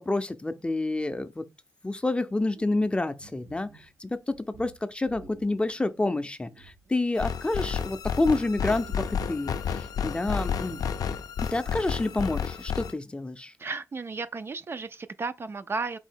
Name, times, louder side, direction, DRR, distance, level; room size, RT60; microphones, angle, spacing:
voice 1, 0.1-1.4 1.8-10.8 11.5-13.5, left 2 dB, 15° left, 0.5 m, -29 dB
sound 1, 2.5-7.5 7.8-9.7 10.2-11.0 11.3-11.4 12.1-13.0, right 5 dB, 80° right, 0.7 m, -52 dB
sound 2, 7.2-12.9, left 7 dB, 80° left, 0.4 m, -31 dB
voice 2, 13.6-16.0, right 4 dB, 40° right, 0.3 m, -34 dB
4.1 x 2.8 x 4.5 m
cardioid pair, 85°, 6 cm